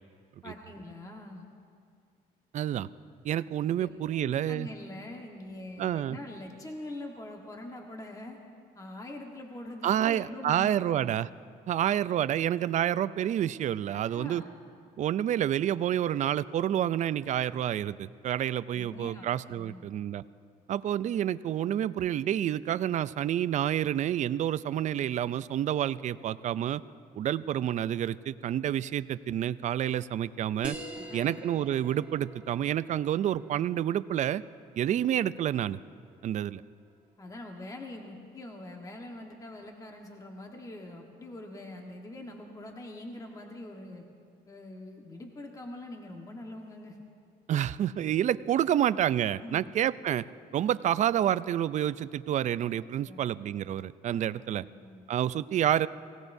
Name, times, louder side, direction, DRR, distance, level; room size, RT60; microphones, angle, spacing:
voice 1, 0.4-1.4 3.8-8.4 8.7-11.1 13.9-14.6 18.7-19.9 30.9-31.3 37.2-44.0 44.5-47.0 49.4-49.7 53.0-53.2 54.1-55.1, left 1 dB, 20° left, 2 dB, 1.3 m, -44 dB
voice 2, 2.5-2.9 3.2-4.7 5.8-6.2 9.8-11.3 11.7-14.4 15.0-20.2 20.7-26.8 27.2-30.8 31.1-34.4 34.8-35.8 36.2-36.6 47.5-50.2 50.5-54.7 55.1-55.9, right 11 dB, 45° right, 16 dB, 0.4 m, -28 dB
sound 1, 30.6-35.7, right 1 dB, 5° right, 2.5 m, -46 dB
24.0 x 17.0 x 2.7 m, 2.3 s
cardioid pair, 110°, 17 cm